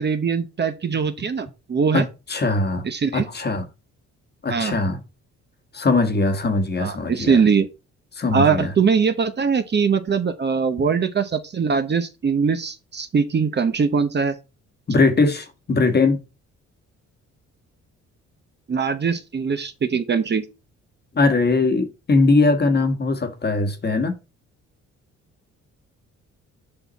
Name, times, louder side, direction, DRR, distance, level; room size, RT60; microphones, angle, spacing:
voice 1, 0.0-2.1 2.8-3.3 4.5-4.8 6.8-7.7 8.3-14.3 18.7-20.4, right 6 dB, 35° right, 0.9 m, -21 dB
voice 2, 1.9-2.8 3.1-3.6 4.4-5.0 5.7-7.4 8.1-8.7 14.9-16.2 21.1-24.1, left 3 dB, 35° left, 1.4 m, -20 dB
6.9 x 5.6 x 4.1 m
cardioid pair, 90°, 30 cm